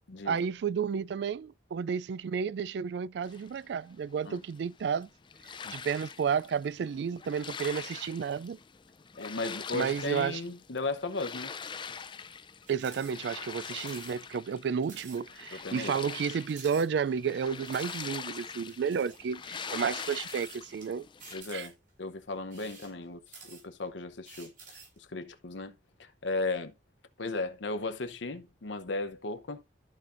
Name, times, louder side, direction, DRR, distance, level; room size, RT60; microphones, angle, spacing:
voice 1, 0.2-5.1 5.7-8.6 9.7-10.4 12.7-21.1 21.5-21.7, right 6 dB, 65° right, 0.3 m, -32 dB
sound 1, 3.2-21.4, left 6 dB, 25° left, 0.5 m, -43 dB
voice 2, 9.2-11.5 15.5-15.9 21.3-25.7 26.0-26.7 27.2-29.6, left 3 dB, 85° left, 0.8 m, -36 dB
sound 2, 12.7-13.1 13.4-13.5 13.8-14.2 14.5-14.6 14.8-15.2 15.6-15.7 16.4-17.3 17.6-18.0 18.7-19.2 20.0-20.8 21.2-21.9 22.4-23.8 24.2-25.0, right 4 dB, 50° right, 4.9 m, -50 dB
13.5 x 5.1 x 2.6 m
head